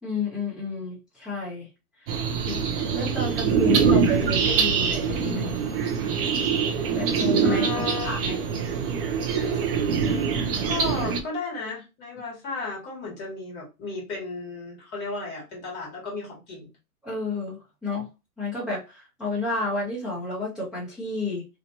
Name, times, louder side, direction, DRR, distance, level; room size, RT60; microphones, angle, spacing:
voice 1, 0.0-1.7 2.0-2.1 2.4-2.6 2.9-5.5 6.9-8.4 17.0-18.1 18.4-21.4, left 3 dB, ahead, 1.0 m, -31 dB
sound 1, 2.1-11.2, right 6 dB, 40° right, 0.7 m, -24 dB
voice 2, 7.4-8.2 10.7-16.7, left 3 dB, 20° left, 1.3 m, -34 dB
3.0 x 2.5 x 2.6 m
hypercardioid pair, 135°, 45 cm